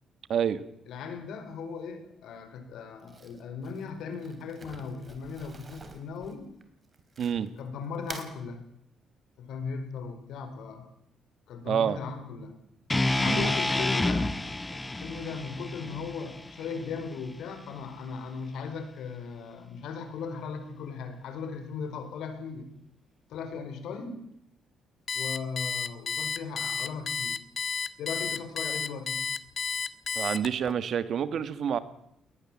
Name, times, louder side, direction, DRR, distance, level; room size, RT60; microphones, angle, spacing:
voice 1, 0.3-0.6 7.2-7.5 11.7-12.0 13.2-13.5 30.1-31.8, right 8 dB, 65° right, 14 dB, 1.7 m, -28 dB
voice 2, 0.9-6.5 7.6-8.6 9.4-10.9 11.5-12.5 13.1-14.3 14.7-22.7 23.3-24.2 25.1-27.4 28.0-29.2, left 5 dB, 80° left, 8 dB, 4.5 m, -37 dB
Crumpling crinkling, 3.0-7.6 7.9-8.3, right 4 dB, 35° right, 3.7 m, -47 dB
sound 1, 12.9-17.1, left 2 dB, 15° left, 1.4 m, -29 dB
Alarm, 25.1-30.7, left 5 dB, 45° left, 1.1 m, -32 dB
21.5 x 19.5 x 7.4 m, 0.77 s
cardioid pair, 90°, 0 cm